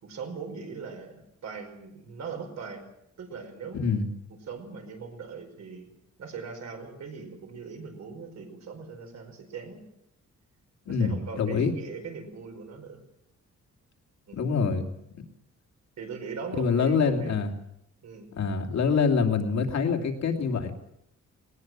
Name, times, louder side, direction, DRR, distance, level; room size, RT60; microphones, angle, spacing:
voice 1, 0.0-2.9 3.2-3.9 4.5-5.9 6.2-9.8 10.9-13.0 14.3-14.5 16.0-17.3 18.0-18.3, right 5 dB, 65° right, 4 dB, 5.1 m, -40 dB
voice 2, 3.7-4.1 10.9-11.7 14.3-14.9 16.5-17.5 18.3-20.7, left 5 dB, 65° left, 4 dB, 2.8 m, -25 dB
20.0 x 19.5 x 7.5 m, 0.78 s
wide cardioid pair, 180°, 29 cm